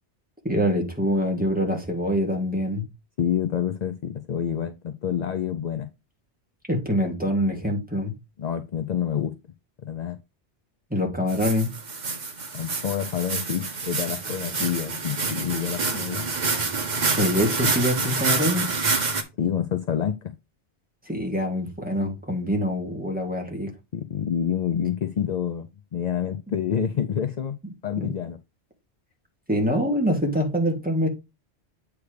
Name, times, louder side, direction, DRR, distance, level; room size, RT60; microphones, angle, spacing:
voice 1, 0.4-2.8 6.7-8.1 10.9-11.7 17.2-18.7 21.1-23.7 28.0-28.1 29.5-31.1, equal, 10° right, 1.8 m, -24 dB
voice 2, 3.2-5.9 8.4-9.4 9.8-10.2 12.5-16.2 19.4-20.3 23.9-27.6 27.8-28.4, left 9 dB, 50° left, 0.5 m, -28 dB
sound 1, 11.3-19.2, right 4 dB, 45° right, 1.0 m, -27 dB
8.3 x 3.3 x 4.9 m
omnidirectional pair, 1.2 m